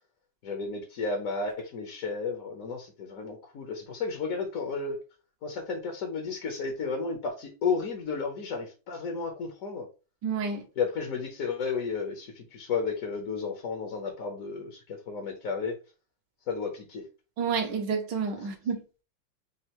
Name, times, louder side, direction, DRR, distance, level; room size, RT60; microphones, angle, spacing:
voice 1, 0.4-5.0 5.4-9.9 10.8-15.8 16.5-17.0 18.4-18.5, left 5 dB, 55° left, 1.0 m, -33 dB
voice 2, 10.2-10.6 17.4-18.8, right 6 dB, 70° right, 1.3 m, -29 dB
6.5 x 2.4 x 2.9 m
omnidirectional pair, 2.2 m